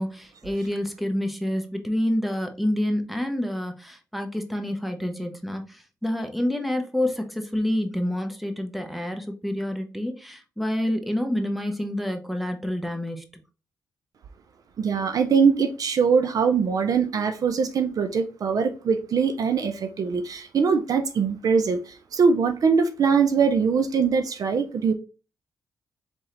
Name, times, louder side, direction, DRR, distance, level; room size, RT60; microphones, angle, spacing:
voice 1, 0.0-13.4, left 1 dB, ahead, 1.0 m, -28 dB
voice 2, 14.8-24.9, right 5 dB, 60° right, 0.6 m, -22 dB
4.4 x 3.6 x 3.2 m
cardioid pair, 75°, 7 cm